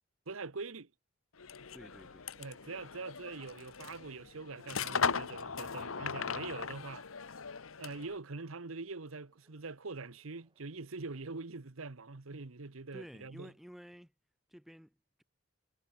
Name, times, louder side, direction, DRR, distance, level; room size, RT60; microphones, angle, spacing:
voice 1, 0.3-0.9 2.4-7.0 7.8-13.5, right 3 dB, 80° right, 1.1 m, -44 dB
sound 1, 1.4-8.2, left 6 dB, 85° left, 1.1 m, -38 dB
sound 2, 1.5-11.4, right 1 dB, 20° right, 6.9 m, -76 dB
voice 2, 1.7-2.3 12.9-14.1 14.5-15.2, equal, ahead, 5.8 m, -52 dB
head